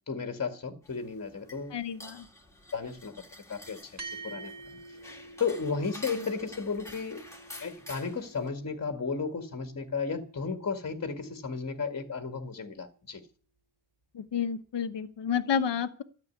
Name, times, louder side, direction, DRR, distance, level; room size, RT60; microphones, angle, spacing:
voice 1, 0.0-1.8 2.7-3.1 3.5-4.8 5.4-7.2 7.6-13.2, left 5 dB, 35° left, 1.9 m, -34 dB
sound 1, 0.8-8.5, left 1 dB, 5° left, 2.5 m, -49 dB
voice 2, 1.7-2.2 6.1-6.3 14.1-16.0, left 7 dB, 60° left, 1.4 m, -30 dB
sound 2, 4.0-12.7, right 3 dB, 35° right, 3.4 m, -49 dB
13.5 x 7.5 x 9.7 m
wide cardioid pair, 120°, 48 cm